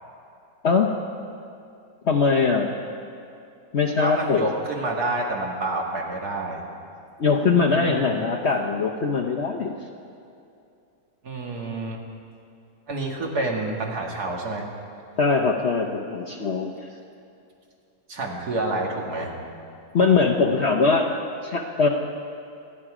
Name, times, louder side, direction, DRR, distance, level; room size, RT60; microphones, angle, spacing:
voice 1, 2.1-2.7 3.7-4.5 7.2-9.7 15.2-16.7 19.9-21.1 21.4-21.9, left 4 dB, 50° left, 1 dB, 0.9 m, -21 dB
voice 2, 4.0-6.6 7.6-8.2 11.2-12.0 12.9-14.7 18.1-19.3, right 2 dB, 60° right, 0 dB, 2.3 m, -28 dB
26.5 x 9.8 x 4.9 m, 2.6 s
omnidirectional pair, 1.9 m